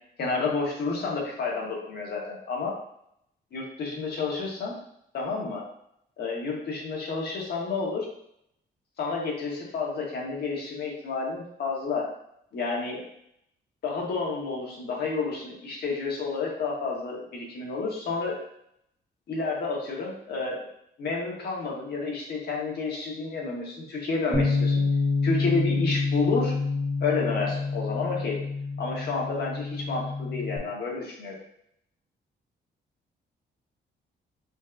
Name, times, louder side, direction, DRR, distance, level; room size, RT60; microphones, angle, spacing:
voice 1, 0.2-2.8 3.5-4.7 5.1-5.6 6.2-8.1 9.0-12.1 12.5-13.0 13.8-18.4 19.3-20.7 21.0-24.8 25.2-26.6 27.0-28.4 28.8-31.3, left 4 dB, 55° left, -2 dB, 1.1 m, -30 dB
Bass guitar, 24.3-30.6, left 4 dB, 15° right, 0.7 m, -27 dB
5.1 x 2.4 x 2.4 m, 0.75 s
cardioid pair, 130°, 19 cm